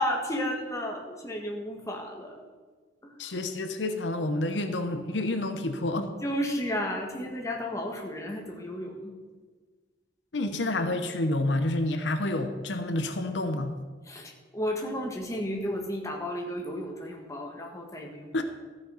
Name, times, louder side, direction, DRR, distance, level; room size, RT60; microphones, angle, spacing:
voice 1, 0.0-2.4 3.0-3.1 6.2-8.9 14.1-18.3, equal, 20° left, 1 dB, 1.6 m, -33 dB
voice 2, 3.2-6.1 10.3-13.7 18.3-18.4, left 2 dB, 90° left, 8 dB, 0.9 m, -29 dB
13.5 x 6.5 x 5.7 m, 1.4 s
head